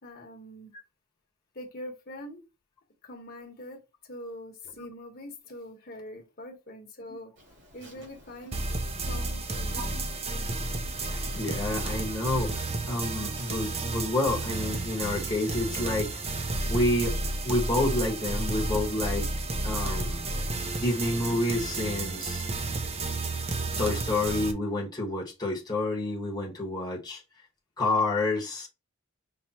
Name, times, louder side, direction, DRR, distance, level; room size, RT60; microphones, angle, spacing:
voice 1, 0.0-0.7 1.5-2.5 3.0-7.3 7.7-8.6 9.1-9.9, left 1 dB, 45° left, 1.2 m, -43 dB
Insect, 7.4-15.0, right 1 dB, 55° right, 2.3 m, -53 dB
sound 1, 8.5-24.5, right 2 dB, 30° right, 0.6 m, -32 dB
voice 2, 11.1-16.1 16.7-17.1 17.4-20.2 20.8-22.4 23.8-27.2 27.8-28.7, left 2 dB, 20° left, 1.2 m, -29 dB
5.6 x 3.1 x 2.9 m
head